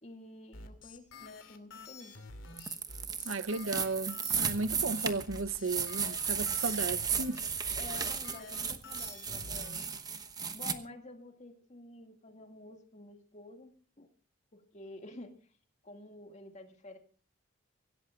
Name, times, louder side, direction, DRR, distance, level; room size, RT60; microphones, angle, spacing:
voice 1, 0.0-2.3 7.8-9.9 10.5-14.1 14.5-15.4 15.8-17.0, left 2 dB, 35° left, 2.1 m, -50 dB
sound 1, 0.5-9.9, left 3 dB, 75° left, 2.7 m, -49 dB
sound 2, 2.6-10.8, right 6 dB, 20° right, 1.0 m, -35 dB
voice 2, 3.2-7.4, right 4 dB, 90° right, 0.8 m, -34 dB
25.0 x 16.5 x 2.4 m
head